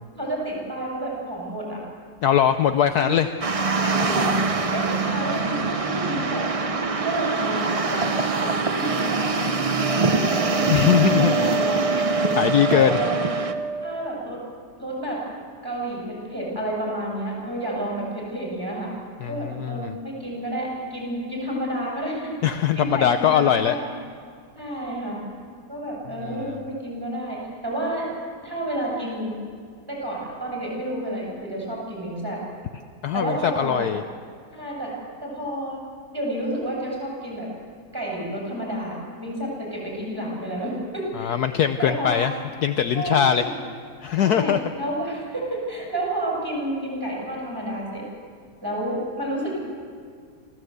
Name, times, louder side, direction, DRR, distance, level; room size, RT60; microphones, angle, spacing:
voice 1, 0.2-1.8 3.0-3.1 3.7-4.3 4.7-6.6 7.0-9.2 9.8-13.3 13.8-14.4 14.8-15.2 15.6-18.9 19.3-24.0 24.6-25.2 25.7-28.1 28.4-29.4 29.9-32.4 33.1-33.9 34.5-34.9 35.2-35.8 36.1-37.5 37.9-41.4 41.8-42.2 42.9-43.5 44.2-48.0 48.6-49.6, right 1 dB, 10° right, -3 dB, 7.7 m, -30 dB
voice 2, 2.2-3.3 10.7-11.4 12.4-13.0 19.2-19.9 22.4-23.7 26.2-26.4 33.0-34.0 41.2-42.3 42.6-43.4 44.0-44.6, left 9 dB, 65° left, 9 dB, 1.2 m, -21 dB
sound 1, 3.4-13.5, right 3 dB, 35° right, 0.6 m, -24 dB
Wind instrument woodwind instrument, 9.8-14.0, right 4 dB, 65° right, 1.5 m, -27 dB
27.0 x 16.0 x 8.1 m, 2.1 s
omnidirectional pair, 1.9 m